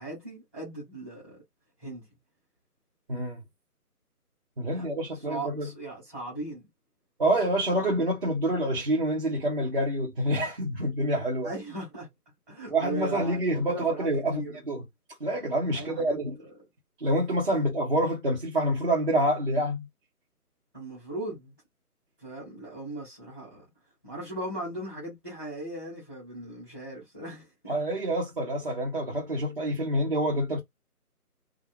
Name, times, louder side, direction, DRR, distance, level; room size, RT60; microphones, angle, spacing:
voice 1, 0.0-1.4 1.8-2.0 4.7-4.8 5.3-6.6 11.4-12.1 12.5-14.6 15.7-16.1 20.7-21.5 22.2-23.6 24.0-27.8, right 2 dB, 10° right, 1.0 m, -38 dB
voice 2, 3.1-3.4 4.6-5.7 7.2-11.5 12.7-14.9 15.2-16.4 17.0-19.9 27.7-30.6, right 1 dB, 35° right, 0.9 m, -27 dB
2.4 x 2.3 x 3.3 m
figure-of-eight pair, 160°, 46 cm